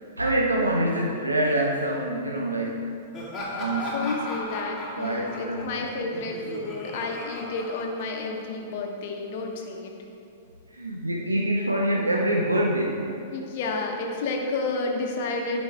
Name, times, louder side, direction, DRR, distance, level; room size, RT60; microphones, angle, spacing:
voice 1, 0.2-2.8 3.6-4.0 5.0-5.7 10.7-13.0, right 1 dB, 85° right, -2 dB, 0.8 m, -25 dB
Laughter, 3.1-8.6, left 1 dB, 20° left, 1.9 m, -36 dB
voice 2, 3.9-9.9 13.3-15.6, left 3 dB, 50° left, 1 dB, 1.1 m, -31 dB
10.0 x 5.4 x 3.6 m, 2.6 s
figure-of-eight pair, 105°, 0 cm